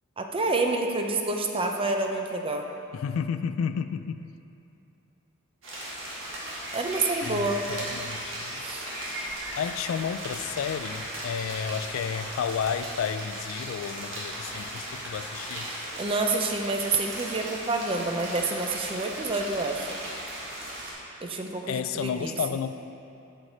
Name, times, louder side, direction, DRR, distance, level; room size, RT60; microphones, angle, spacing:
voice 1, 0.2-2.7 6.7-7.7 8.6-8.9 16.0-20.0 21.2-22.4, right 3 dB, 25° right, 3 dB, 0.5 m, -28 dB
voice 2, 2.9-4.3 7.2-8.6 9.6-15.7 21.7-22.7, left 7 dB, 75° left, 11 dB, 0.3 m, -32 dB
sound 1, 5.6-20.9, right 1 dB, 70° right, 1.8 m, -37 dB
7.9 x 6.4 x 4.2 m, 2.7 s
head